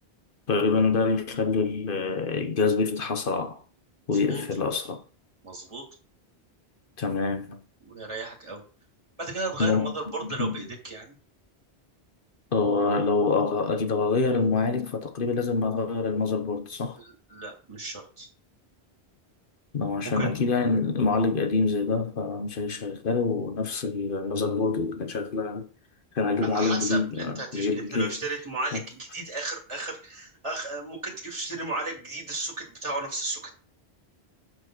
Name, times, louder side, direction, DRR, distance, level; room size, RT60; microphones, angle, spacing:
voice 1, 0.5-3.6 4.1-5.0 7.0-7.6 9.6-9.9 10.2-10.6 12.5-17.0 19.7-25.7 26.1-28.2 28.7-28.8, left 4 dB, 55° left, 1.2 m, -26 dB
voice 2, 4.1-4.4 5.4-5.8 7.8-8.6 9.2-11.0 17.0-18.3 20.0-20.4 26.4-33.5, right 2 dB, 30° right, 2.3 m, -34 dB
7.7 x 4.6 x 6.1 m
omnidirectional pair, 1.1 m